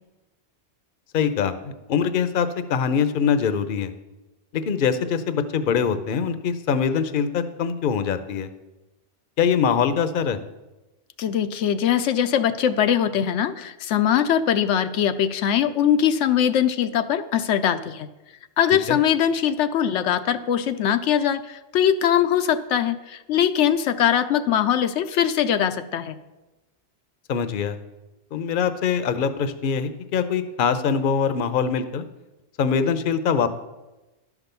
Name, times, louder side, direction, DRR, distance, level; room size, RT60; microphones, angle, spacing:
voice 1, 1.1-3.9 4.5-8.5 9.4-10.4 18.9-19.0 27.3-27.8 28.3-32.0 32.6-33.5, left 7 dB, 55° left, 11 dB, 0.8 m, -23 dB
voice 2, 11.2-18.1 18.6-26.2, left 9 dB, 85° left, 9 dB, 0.9 m, -21 dB
11.0 x 6.0 x 6.8 m, 1.1 s
omnidirectional pair, 1.2 m